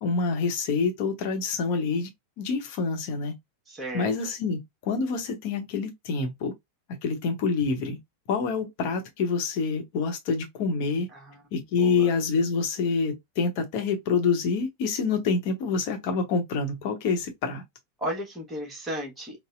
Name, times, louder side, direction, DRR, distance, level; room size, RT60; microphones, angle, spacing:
voice 1, 0.0-2.1 2.4-3.3 3.9-6.5 7.0-8.0 8.3-11.1 11.5-17.6, left 4 dB, 45° left, 0.8 m, -27 dB
voice 2, 3.7-4.1 11.1-11.4 11.8-12.1 18.0-19.4, equal, 15° right, 1.1 m, -34 dB
4.0 x 2.0 x 2.4 m
figure-of-eight pair, 90°, 0 cm